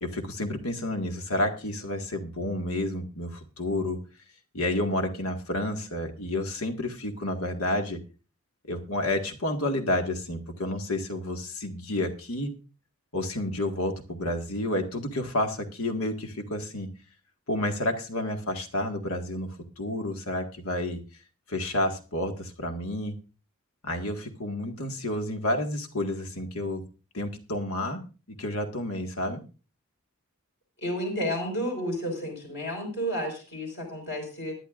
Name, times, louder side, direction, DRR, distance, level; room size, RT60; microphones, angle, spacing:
voice 1, 0.0-4.0 4.5-8.0 8.7-12.5 13.1-16.9 17.5-21.0 21.5-23.2 23.8-26.8 27.1-28.1 28.4-29.4, left 1 dB, 90° left, 5 dB, 1.9 m, -30 dB
voice 2, 30.8-34.5, equal, 55° left, 2 dB, 5.2 m, -31 dB
20.0 x 10.5 x 2.5 m, 0.33 s
head